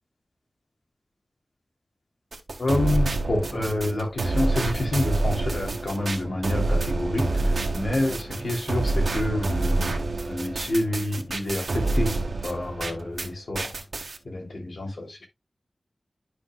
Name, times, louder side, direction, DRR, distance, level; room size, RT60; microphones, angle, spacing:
sound 1, 2.3-13.3 13.5-14.2, right 2 dB, 90° right, 1.4 m, -27 dB
voice 1, 2.6-10.0 10.3-12.1 12.4-13.7 14.2-15.3, left 1 dB, 80° left, 3.1 m, -28 dB
11.0 x 5.8 x 2.3 m
wide cardioid pair, 80°, 0 cm